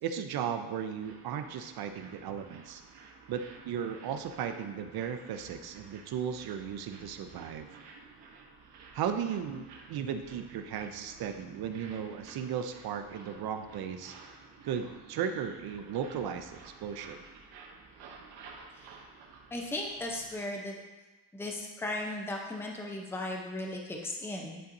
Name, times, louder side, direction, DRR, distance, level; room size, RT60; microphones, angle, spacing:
voice 1, 0.0-2.8 3.3-7.7 8.9-14.1 14.6-17.2, right 8 dB, 70° right, 7 dB, 0.6 m, -36 dB
sound 1, 1.0-20.3, right 5 dB, 90° right, 1.0 m, -53 dB
voice 2, 19.5-20.8 21.3-24.6, left 1 dB, 5° left, 0 dB, 0.6 m, -36 dB
10.0 x 4.1 x 2.6 m, 1.2 s
cardioid pair, 150°, 39 cm